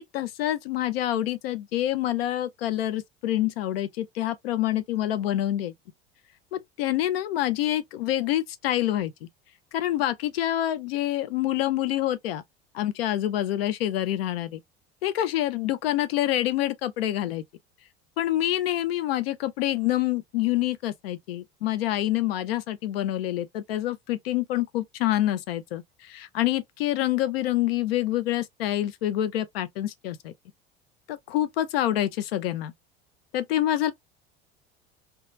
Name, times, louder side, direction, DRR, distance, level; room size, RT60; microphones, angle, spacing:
voice 1, 0.0-5.7 6.5-9.3 9.7-12.4 12.7-14.6 15.0-17.4 18.2-30.3 31.1-32.7 33.3-33.9, left 13 dB, 60° left, 0.5 m, -27 dB
2.9 x 2.3 x 2.3 m
figure-of-eight pair, 70°, 33 cm